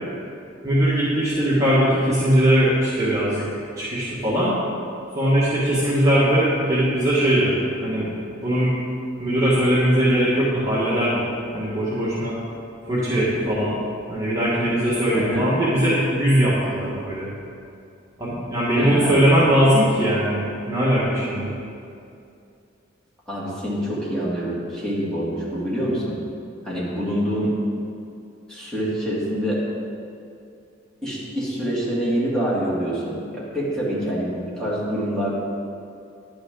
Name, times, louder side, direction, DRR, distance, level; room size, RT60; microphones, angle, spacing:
voice 1, 0.6-3.5 3.8-4.5 5.2-8.7 9.2-11.2 11.5-12.4 12.9-13.8 14.1-17.3 18.2-21.5, equal, 20° right, -10 dB, 1.8 m, -20 dB
voice 2, 15.1-15.5 18.8-19.4 23.3-26.2 26.6-27.6 28.5-29.6 31.0-35.3, equal, 5° left, -8 dB, 2.6 m, -26 dB
11.0 x 9.6 x 3.9 m, 2.5 s
head